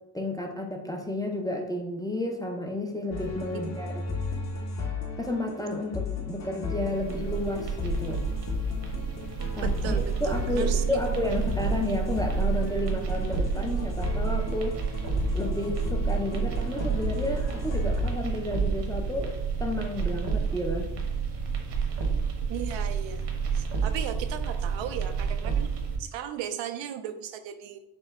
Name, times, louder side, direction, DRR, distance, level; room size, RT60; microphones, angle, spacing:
voice 1, 0.1-3.9 5.2-8.2 9.6-9.7 10.2-14.8 15.3-19.3 19.6-20.9, left 1 dB, 10° left, 2 dB, 0.4 m, -31 dB
sound 1, 3.1-18.1, left 5 dB, 40° left, 0.8 m, -35 dB
sound 2, 6.7-26.0, right 6 dB, 65° right, 1.0 m, -30 dB
voice 2, 9.6-11.4 22.5-23.3 23.5-25.7 26.0-27.8, right 9 dB, 85° right, 9 dB, 0.6 m, -36 dB
5.3 x 2.1 x 3.5 m, 0.88 s
cardioid pair, 110°, 44 cm